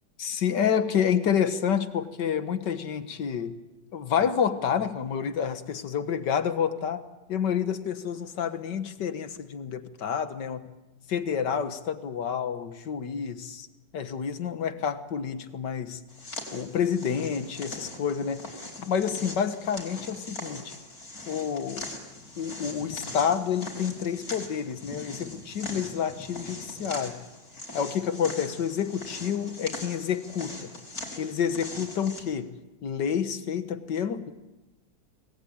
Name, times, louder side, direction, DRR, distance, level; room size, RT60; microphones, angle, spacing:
voice 1, 0.2-3.5 3.9-7.0 7.3-10.7 11.1-13.7 13.9-16.0 16.5-18.4 18.8-20.8 21.3-21.9 22.4-27.2 27.7-30.7 31.2-34.3, left 7 dB, 70° left, 10 dB, 2.0 m, -29 dB
sound 1, 16.1-32.2, left 2 dB, 45° left, 5.2 m, -41 dB
26.5 x 20.5 x 8.9 m, 1.1 s
omnidirectional pair, 2.0 m